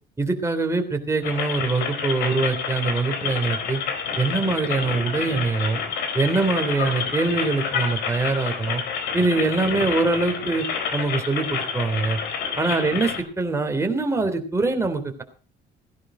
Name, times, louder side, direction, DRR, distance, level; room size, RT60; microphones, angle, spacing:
voice 1, 0.2-3.8 4.2-5.8 6.1-8.8 9.1-10.6 10.9-12.2 12.6-13.1 13.4-15.2, right 3 dB, 15° right, 5 dB, 3.4 m, -23 dB
sound 1, 1.2-13.2, left 6 dB, 75° left, 3.8 m, -29 dB
17.5 x 11.0 x 5.1 m, 0.37 s
cardioid pair, 110°, 17 cm